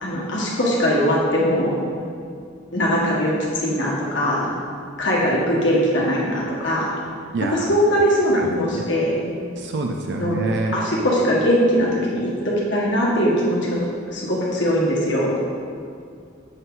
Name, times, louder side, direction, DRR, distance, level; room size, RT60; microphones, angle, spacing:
voice 1, 0.0-1.7 2.7-4.5 5.0-6.9 7.5-9.3 10.2-10.4 10.7-13.8 14.1-15.3, equal, 65° left, -4 dB, 1.7 m, -21 dB
voice 2, 7.3-7.6 8.3-8.9 9.6-10.7, right 2 dB, 60° right, 2 dB, 0.5 m, -26 dB
7.9 x 5.5 x 4.0 m, 2.3 s
head